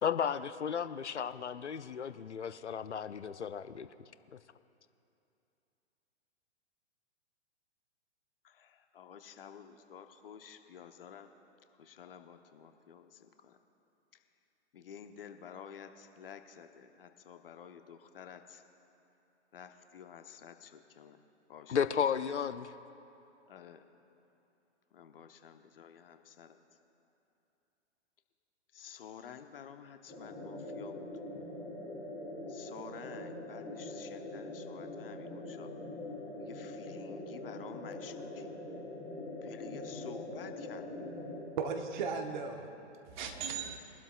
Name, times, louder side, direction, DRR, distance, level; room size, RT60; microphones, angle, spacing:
voice 1, 0.0-3.9 21.7-22.7, left 7 dB, 75° left, 13 dB, 0.6 m, -34 dB
voice 2, 8.4-11.3 11.8-13.6 14.1-14.2 14.7-18.6 19.5-21.2 21.5-22.2 23.5-23.9 24.9-26.6 28.7-31.1 32.5-35.7 36.4-38.5 39.4-40.9 43.4-43.6, left 8 dB, 55° left, 7 dB, 0.9 m, -51 dB
sound 1, 30.1-41.4, left 2 dB, 20° left, 3.4 m, -43 dB
voice 3, 41.6-42.7 43.0-43.8, right 5 dB, 40° right, 5 dB, 1.3 m, -36 dB
23.0 x 12.0 x 2.4 m, 2.8 s
figure-of-eight pair, 115°, 35 cm